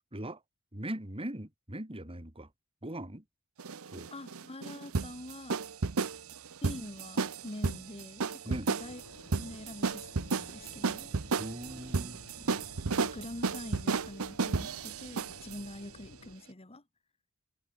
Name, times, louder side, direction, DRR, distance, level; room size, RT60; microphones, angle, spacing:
voice 1, 0.7-2.5 2.8-3.2 3.9-4.1 8.5-8.7 11.4-12.2, right 1 dB, 25° right, 3.9 m, -40 dB
sound 1, 3.6-15.6, right 4 dB, 75° right, 0.9 m, -33 dB
voice 2, 4.1-5.6 6.6-9.0 9.3-11.1 12.4-12.6 13.0-16.8, left 1 dB, 30° left, 1.7 m, -45 dB
sound 2, 8.8-16.4, left 2 dB, 85° left, 2.2 m, -53 dB
head